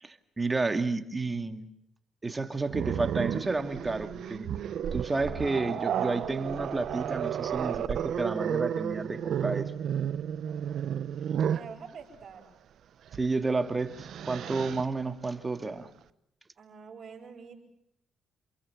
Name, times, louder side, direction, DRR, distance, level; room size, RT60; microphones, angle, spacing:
voice 1, 0.0-1.7 2.2-4.5 4.9-9.7 13.1-15.9, right 3 dB, 20° right, 8 dB, 2.2 m, -31 dB
Growling, 2.7-11.7 13.1-13.3 13.7-14.8, right 9 dB, 70° right, 1.1 m, -32 dB
voice 2, 11.5-12.5 16.6-17.6, right 6 dB, 50° right, -7 dB, 7.4 m, -46 dB
28.5 x 22.5 x 7.2 m, 0.72 s
cardioid pair, 90°, 0 cm